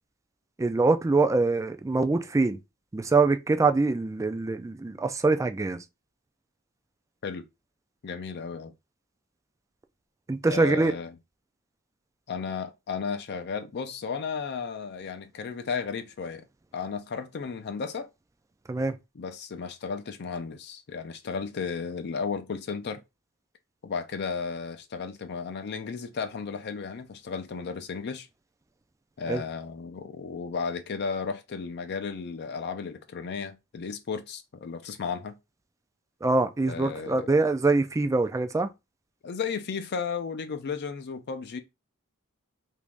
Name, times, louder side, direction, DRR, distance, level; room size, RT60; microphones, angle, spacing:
voice 1, 0.6-2.6 2.9-5.8 10.3-10.9 18.7-18.9 29.3-29.4 36.2-38.7, right 3 dB, 15° right, 0.3 m, -24 dB
voice 2, 8.0-8.7 10.5-11.1 12.3-16.5 16.7-18.1 19.1-23.0 23.8-28.3 29.2-35.3 36.6-37.3 39.2-41.6, left 5 dB, 50° left, 0.5 m, -34 dB
3.0 x 2.6 x 3.4 m
head